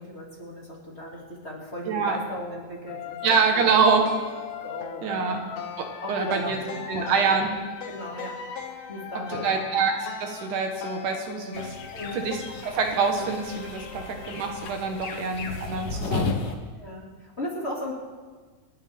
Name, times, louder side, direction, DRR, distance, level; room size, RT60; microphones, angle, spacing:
voice 1, 0.0-3.7 4.0-4.1 4.6-5.3 6.0-8.4 8.7-9.6 11.9-12.3 13.9-14.1 15.1-15.3 16.8-17.9, left 1 dB, 20° left, -4 dB, 2.4 m, -37 dB
voice 2, 1.9-2.2 3.2-4.1 5.0-5.4 5.8-6.6 6.9-7.5 9.1-11.7 12.1-12.4 12.6-16.3, right 5 dB, 85° right, 3 dB, 3.0 m, -25 dB
sound 1, 2.9-15.2, left 7 dB, 75° left, 2.1 m, -39 dB
sound 2, 11.5-16.5, left 4 dB, 55° left, 1.2 m, -34 dB
28.0 x 9.9 x 3.6 m, 1.4 s
omnidirectional pair, 3.5 m